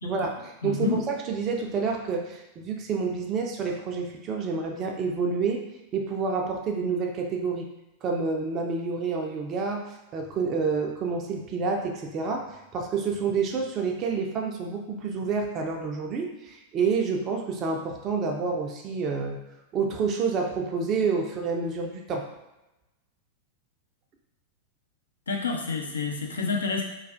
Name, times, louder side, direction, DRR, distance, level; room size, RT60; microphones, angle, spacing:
voice 1, 0.0-5.6 5.9-7.7 8.0-19.4 19.7-22.2, right 5 dB, 30° right, 1 dB, 0.4 m, -28 dB
voice 2, 0.6-1.0 25.3-26.8, left 4 dB, 70° left, 1 dB, 0.5 m, -28 dB
3.2 x 2.3 x 2.5 m, 0.97 s
figure-of-eight pair, 90°, 0 cm